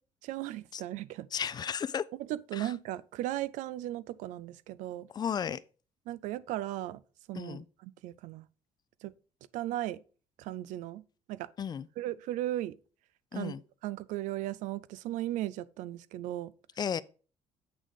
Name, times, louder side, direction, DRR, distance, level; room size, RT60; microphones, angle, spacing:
voice 1, 0.2-1.4 2.2-5.1 6.1-7.0 7.3-8.5 9.0-9.1 9.5-10.0 10.4-11.0 11.3-11.5 12.0-12.8 13.3-13.6 13.8-16.5, right 14 dB, 90° right, 0.4 m, -36 dB
voice 2, 1.3-2.0 2.6-2.7 5.1-5.6 7.4-7.6 11.6-11.9 13.3-13.6 16.8-17.0, left 8 dB, 35° left, 0.4 m, -33 dB
8.2 x 3.7 x 5.1 m
cardioid pair, 120°, 13 cm